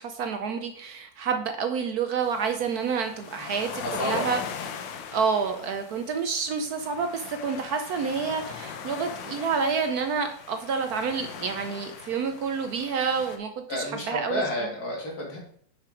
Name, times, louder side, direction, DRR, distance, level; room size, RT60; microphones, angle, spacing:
voice 1, 0.0-4.4 5.1-14.4, right 5 dB, 65° right, 6 dB, 1.0 m, -28 dB
sound 1, 2.2-13.4, left 7 dB, 85° left, 1.6 m, -40 dB
voice 2, 3.8-4.2 13.7-15.4, left 1 dB, 55° left, -2 dB, 2.6 m, -30 dB
6.1 x 5.9 x 4.9 m, 0.62 s
omnidirectional pair, 1.9 m